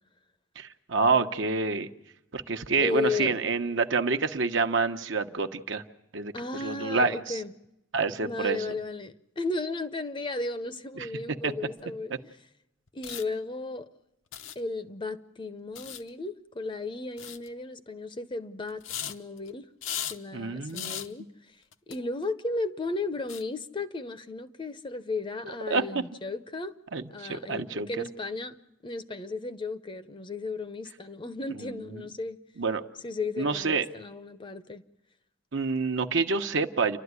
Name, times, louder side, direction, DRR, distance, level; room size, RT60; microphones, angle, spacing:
voice 1, 0.6-1.9 2.3-5.8 6.1-7.4 7.9-8.6 11.0-11.1 11.4-11.5 12.1-12.2 20.3-21.0 25.7-25.8 26.9-28.0 31.6-32.0 32.6-32.8 33.4-33.9 35.5-37.0, right 4 dB, 65° right, 1.0 m, -28 dB
voice 2, 2.8-3.4 6.3-7.5 8.2-12.3 12.9-13.9 14.6-19.7 20.1-21.2 21.9-26.7 27.1-28.5 28.8-32.4 33.0-34.8, left 3 dB, 25° left, 0.7 m, -34 dB
sound 1, 11.8-11.9 12.9-13.2 14.3-14.6 15.8-16.1 17.2-17.5 18.7-19.5 19.8-20.2 20.7-21.1 21.7-22.0 22.2-22.3 23.3-23.4, left 9 dB, 75° left, 0.9 m, -36 dB
29.0 x 12.0 x 9.6 m
head